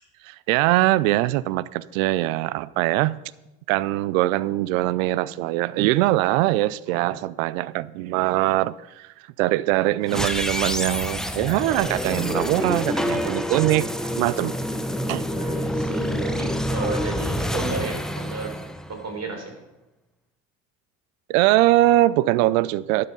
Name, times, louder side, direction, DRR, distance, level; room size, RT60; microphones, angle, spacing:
voice 1, 0.2-3.2 3.7-9.1 9.4-14.6 15.1-15.2 21.3-23.1, right 17 dB, 75° right, 0.5 m, -22 dB
voice 2, 6.9-7.3 15.3-18.6 19.0-19.5, right 3 dB, 40° right, 3.7 m, -33 dB
sound 1, 10.1-19.3, equal, ahead, 0.8 m, -27 dB
12.0 x 6.8 x 5.3 m
hypercardioid pair, 65°, 41 cm